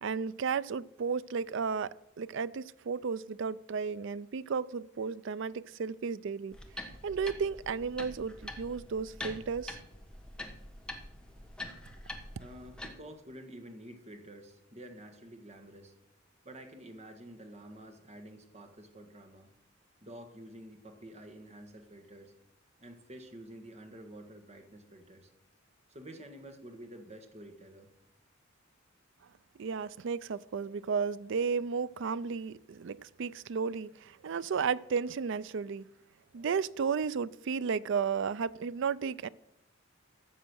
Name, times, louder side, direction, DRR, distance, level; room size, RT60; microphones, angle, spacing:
voice 1, 0.0-6.6 7.0-9.8 29.6-35.9 36.3-39.3, right 5 dB, 65° right, 0.4 m, -33 dB
sound 1, 6.5-12.9, left 1 dB, 5° left, 1.2 m, -45 dB
voice 2, 12.3-15.9 16.4-19.5 20.0-22.3 22.8-25.3 25.9-27.9, right 1 dB, 35° right, 1.7 m, -49 dB
13.5 x 7.5 x 6.2 m
head